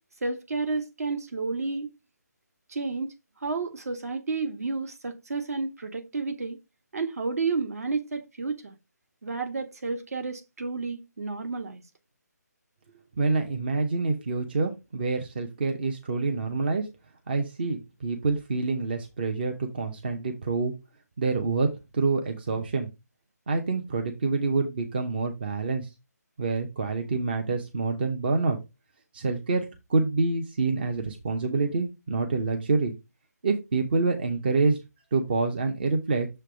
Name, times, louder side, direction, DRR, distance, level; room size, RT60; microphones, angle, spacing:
voice 1, 0.2-1.9 2.7-6.6 6.9-8.7 9.2-11.8, right 4 dB, 60° right, 1.4 m, -31 dB
voice 2, 13.2-16.9 17.3-20.7 21.2-21.7 21.9-22.9 23.5-25.9 26.4-28.6 29.1-32.9 33.4-34.8 35.1-36.3, right 3 dB, 35° right, 0.7 m, -27 dB
6.8 x 3.3 x 5.0 m
hypercardioid pair, 170°, 9 cm